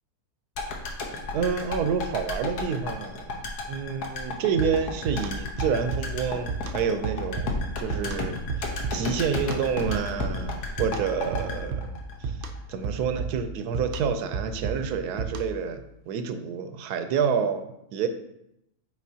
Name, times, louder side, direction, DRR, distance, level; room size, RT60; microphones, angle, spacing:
sound 1, 0.6-12.7 13.0-13.1, left 3 dB, 90° left, 1.4 m, -34 dB
voice 1, 1.3-3.4 3.7-8.7 8.9-12.4 12.7-18.1, right 6 dB, 85° right, 8 dB, 1.2 m, -28 dB
sound 2, 4.6-15.7, right 4 dB, 70° right, 0.5 m, -34 dB
8.1 x 4.5 x 2.8 m, 0.81 s
omnidirectional pair, 1.6 m